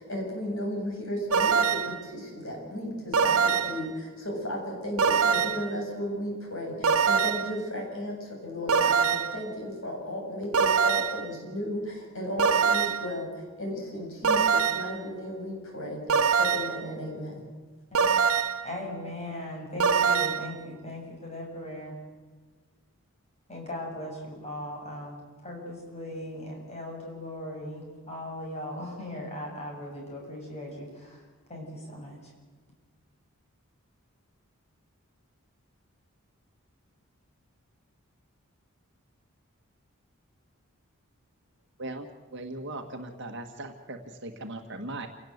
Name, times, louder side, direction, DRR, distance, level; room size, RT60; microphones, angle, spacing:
voice 1, 0.0-13.3 13.6-16.0 16.4-17.4, left 1 dB, 65° left, 0 dB, 7.9 m, -35 dB
sound 1, 1.3-2.0 3.1-3.9 5.0-5.7 6.8-7.6 8.7-9.4 10.5-11.3 12.4-13.1 14.2-15.0 16.1-16.8 17.9-18.7 19.8-20.5, right 6 dB, 85° right, 1.2 m, -24 dB
voice 2, 18.6-22.0 23.5-31.2 31.5-32.3, left 1 dB, 30° left, -1 dB, 7.7 m, -38 dB
voice 3, 41.8-45.1, right 2 dB, 55° right, 4 dB, 1.7 m, -39 dB
27.5 x 18.0 x 8.1 m, 1.4 s
head